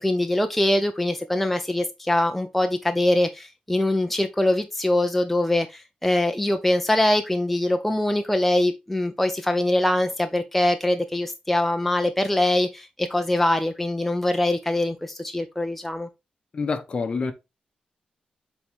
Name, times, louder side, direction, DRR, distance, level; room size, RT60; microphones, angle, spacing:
voice 1, 0.0-16.1, left 1 dB, 5° left, 0.5 m, -23 dB
voice 2, 16.5-17.3, left 4 dB, 40° left, 0.9 m, -27 dB
8.0 x 3.6 x 3.4 m
wide cardioid pair, 135°, 3 cm